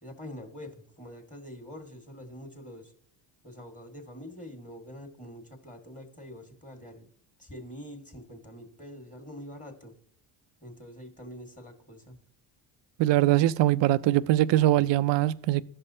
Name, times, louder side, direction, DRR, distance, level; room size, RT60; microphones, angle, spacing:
voice 1, 0.0-2.9 3.4-7.1 7.4-9.9 10.6-12.2, equal, 15° left, 1.6 m, -45 dB
voice 2, 13.0-15.6, right 14 dB, 60° right, 0.5 m, -22 dB
14.5 x 5.5 x 2.7 m
supercardioid pair, 75°, 49 cm